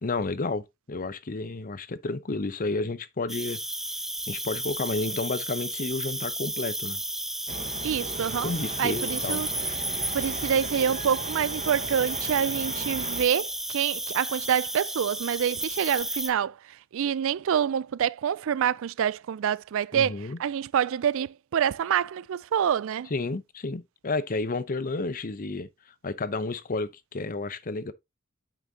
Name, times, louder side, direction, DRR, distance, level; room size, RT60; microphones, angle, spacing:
voice 1, 0.0-3.6 4.3-7.0 8.4-9.4 19.9-20.4 23.1-25.7 26.0-27.9, left 3 dB, 40° left, 0.7 m, -31 dB
Cricket, 3.3-16.3, right 1 dB, ahead, 0.6 m, -33 dB
sound 1, 7.5-13.2, right 3 dB, 35° right, 1.2 m, -38 dB
voice 2, 7.8-8.5 8.8-9.5 10.1-23.1, right 8 dB, 65° right, 0.4 m, -27 dB
8.9 x 6.2 x 2.8 m
head